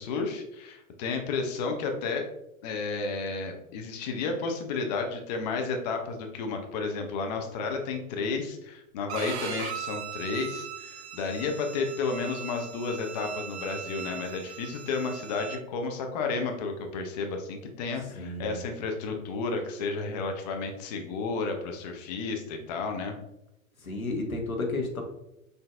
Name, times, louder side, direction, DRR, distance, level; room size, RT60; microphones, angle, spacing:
voice 1, 0.0-2.2 2.6-23.1, left 4 dB, 30° left, 4 dB, 0.5 m, -32 dB
Bowed string instrument, 9.1-15.6, right 8 dB, 50° right, 0.5 m, -39 dB
voice 2, 18.2-18.6 23.8-25.0, left 2 dB, 85° left, 2 dB, 0.9 m, -32 dB
5.5 x 2.6 x 2.4 m, 0.86 s
figure-of-eight pair, 100°, 41 cm